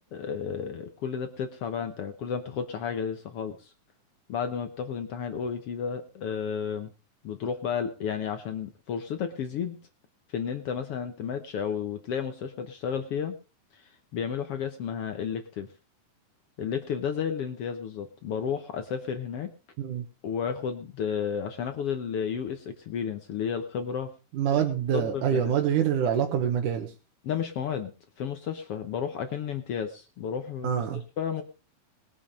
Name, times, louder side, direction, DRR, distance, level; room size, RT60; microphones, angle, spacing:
voice 1, 0.1-3.7 4.3-6.9 7.2-9.8 10.3-13.3 13.7-15.7 16.6-19.5 20.2-24.1 24.5-24.6 24.9-25.5 27.2-27.9 28.2-30.8 31.2-31.4, left 7 dB, 70° left, 8 dB, 1.4 m, -32 dB
voice 2, 24.3-26.9 30.6-31.0, right 9 dB, 70° right, 2 dB, 2.7 m, -26 dB
20.5 x 7.1 x 5.0 m, 0.35 s
omnidirectional pair, 4.0 m